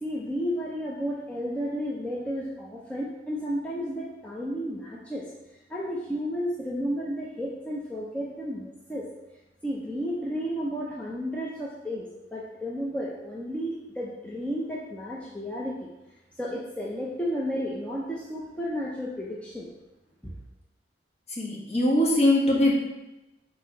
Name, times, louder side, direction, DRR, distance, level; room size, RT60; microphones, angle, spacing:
voice 1, 0.0-5.2 5.7-9.0 9.6-15.9 16.4-19.7 20.2-20.3, equal, 5° left, -5 dB, 0.6 m, -32 dB
voice 2, 21.3-22.7, left 1 dB, 35° left, -4 dB, 1.5 m, -22 dB
4.5 x 4.2 x 5.2 m, 0.99 s
head